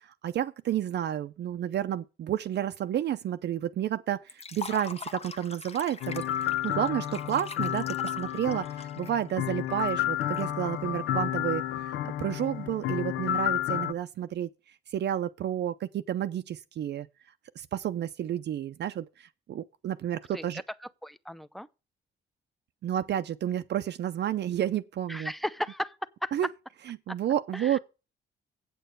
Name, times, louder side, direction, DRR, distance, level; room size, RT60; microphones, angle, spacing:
voice 1, 0.0-6.3 6.6-8.7 9.0-14.5 14.9-17.1 17.6-20.6 22.8-25.3 26.3-26.5 27.1-27.8, right 10 dB, 60° right, 0.6 m, -31 dB
Liquid, 4.3-10.4, left 4 dB, 30° left, 0.8 m, -43 dB
sound 1, 6.0-13.9, left 11 dB, 80° left, 0.5 m, -31 dB
voice 2, 20.3-20.6 21.0-21.7 25.1-26.3 27.1-27.2 27.5-27.8, left 1 dB, ahead, 0.6 m, -35 dB
8.3 x 6.8 x 6.6 m
cardioid pair, 90°, 20 cm